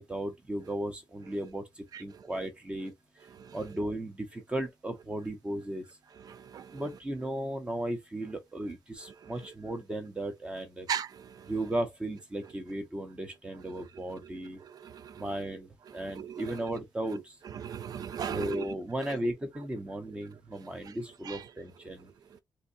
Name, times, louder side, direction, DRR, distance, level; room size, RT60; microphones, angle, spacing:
voice 1, 0.0-2.9 3.5-5.8 6.7-10.9 11.5-14.6 15.2-17.2 18.3-22.1, right 1 dB, 15° right, 0.7 m, -35 dB
voice 2, 6.2-6.8 9.2-9.3 10.9-11.5 14.6-15.4 15.9-16.6 17.5-18.7 19.1-19.3 20.8-21.0 21.2-21.4, right 8 dB, 65° right, 0.4 m, -38 dB
3.9 x 2.6 x 2.5 m
wide cardioid pair, 175°, 7 cm